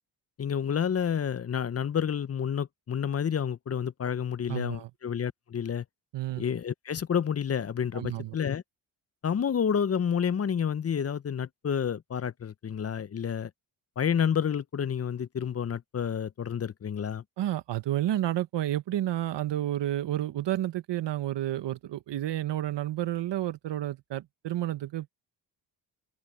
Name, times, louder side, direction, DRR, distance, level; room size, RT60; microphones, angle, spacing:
voice 1, 0.4-5.8 6.4-8.6 9.2-13.5 14.0-17.2, left 8 dB, 35° left, 0.7 m, -29 dB
voice 2, 4.5-4.9 6.1-6.4 7.9-8.4 17.4-25.1, right 13 dB, 75° right, 1.1 m, -30 dB
open air
cardioid pair, 70°, 43 cm